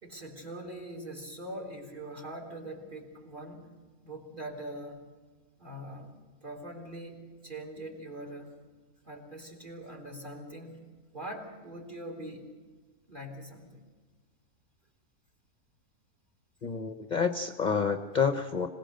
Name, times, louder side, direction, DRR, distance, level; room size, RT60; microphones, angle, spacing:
voice 1, 0.0-3.7 4.0-5.0 5.6-6.1 6.4-8.6 9.0-10.8 11.1-12.5 13.1-13.8, right 1 dB, 30° right, 3 dB, 4.1 m, -42 dB
voice 2, 16.6-18.7, left 6 dB, 35° left, 8 dB, 0.9 m, -28 dB
25.5 x 18.0 x 6.7 m, 1.4 s
omnidirectional pair, 1.6 m